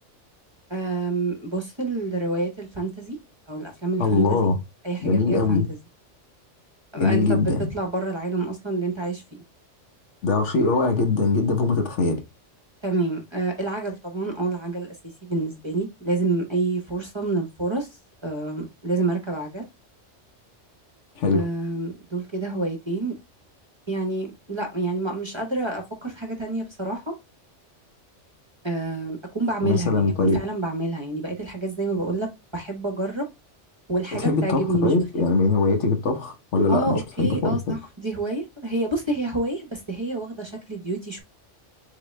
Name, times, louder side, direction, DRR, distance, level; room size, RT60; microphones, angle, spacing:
voice 1, 0.7-3.2 3.5-4.5 4.8-5.6 6.9-7.4 7.7-9.2 12.8-15.0 15.2-17.9 18.2-19.6 21.3-23.1 23.9-27.1 28.6-33.3 33.9-35.0 36.7-41.2, right 2 dB, 25° right, 0.9 m, -28 dB
voice 2, 4.0-4.6 5.0-5.7 7.0-7.7 10.2-12.2 21.2-21.5 29.6-30.4 34.1-37.6, left 3 dB, 70° left, 1.2 m, -22 dB
4.0 x 3.7 x 3.1 m
omnidirectional pair, 1.2 m